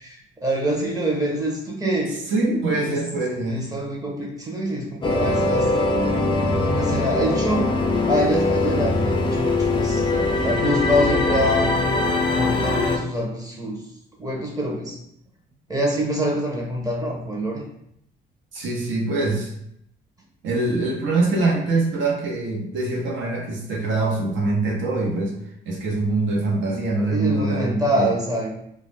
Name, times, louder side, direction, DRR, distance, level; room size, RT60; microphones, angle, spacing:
voice 1, 0.0-2.1 2.7-3.0 3.5-5.7 6.5-7.7 8.1-11.8 12.3-13.8 14.2-15.0 15.7-17.6 27.0-28.5, equal, 20° right, -2 dB, 0.7 m, -25 dB
voice 2, 2.3-3.6 5.3-5.5 18.5-19.5 20.4-25.3 25.6-28.1, right 2 dB, 70° right, -2 dB, 0.8 m, -24 dB
sound 1, 5.0-13.0, left 2 dB, 25° left, 0.4 m, -22 dB
2.3 x 2.0 x 3.2 m, 0.74 s
cardioid pair, 90°, 20 cm